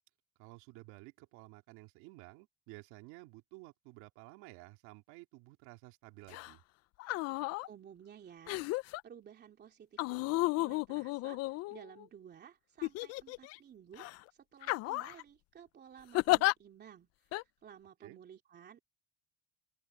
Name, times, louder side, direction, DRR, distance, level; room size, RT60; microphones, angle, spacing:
voice 1, 0.4-6.6 18.0-18.2, right 21 dB, 80° right, 2.6 m, -53 dB
sound 1, 6.3-6.5 7.0-7.7 8.5-9.0 10.0-12.0 12.8-13.6 14.0-14.2 14.6-15.2 16.1-16.5 17.3-17.4, left 20 dB, 60° left, 0.5 m, -33 dB
voice 2, 7.7-8.6 9.0-18.8, right 8 dB, 35° right, 3.1 m, -55 dB
open air
cardioid pair, 130°, 29 cm